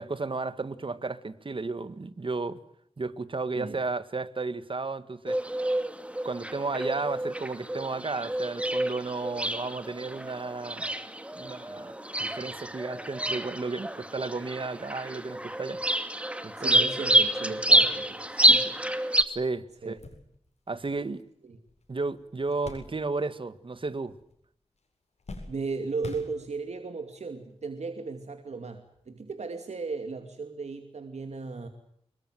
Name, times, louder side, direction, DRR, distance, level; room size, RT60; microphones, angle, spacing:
voice 1, 0.0-2.6 3.0-5.4 6.2-10.9 11.4-11.9 12.2-15.8 16.4-16.7 19.3-20.0 20.7-21.2 21.9-24.2, right 3 dB, 50° right, 1.9 m, -33 dB
sound 1, 5.3-19.2, right 1 dB, 10° right, 2.3 m, -28 dB
voice 2, 16.6-18.8 19.8-20.0 21.4-21.6 25.5-31.7, right 4 dB, 85° right, 2.6 m, -36 dB
sound 2, 19.2-19.3 19.7-23.5 23.7-24.5 24.8-26.8 27.6-27.7 29.0-29.1, left 3 dB, 80° left, 7.8 m, -46 dB
27.0 x 22.5 x 7.8 m
wide cardioid pair, 95°, 11 cm